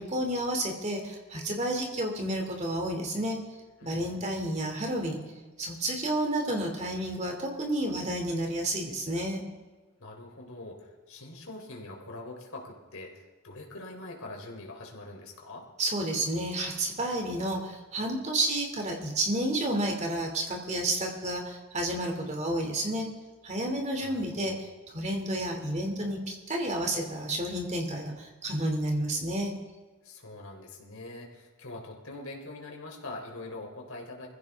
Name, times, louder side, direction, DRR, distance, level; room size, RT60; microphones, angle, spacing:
voice 1, 0.0-3.4 3.8-5.2 5.6-9.4 15.8-23.1 23.4-24.5 24.9-29.5, right 1 dB, 30° right, 2 dB, 2.7 m, -30 dB
voice 2, 3.8-4.3 10.0-15.7 24.0-24.6 30.0-34.3, left 2 dB, 70° left, 1 dB, 3.6 m, -43 dB
23.0 x 15.5 x 3.6 m, 1.3 s
head